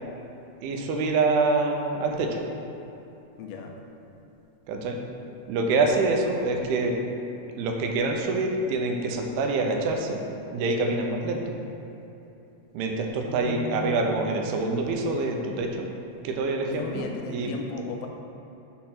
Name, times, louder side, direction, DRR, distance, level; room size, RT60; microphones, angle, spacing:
voice 1, 0.6-2.4 4.7-5.0 5.5-6.9 7.5-10.2 10.5-11.4 12.7-15.9 16.2-17.5, right 3 dB, 85° right, 2 dB, 2.7 m, -26 dB
voice 2, 3.4-3.7 13.1-14.3 16.7-18.1, left 4 dB, 80° left, 2 dB, 2.5 m, -37 dB
6.7 x 4.3 x 5.8 m, 3.0 s
omnidirectional pair, 4.5 m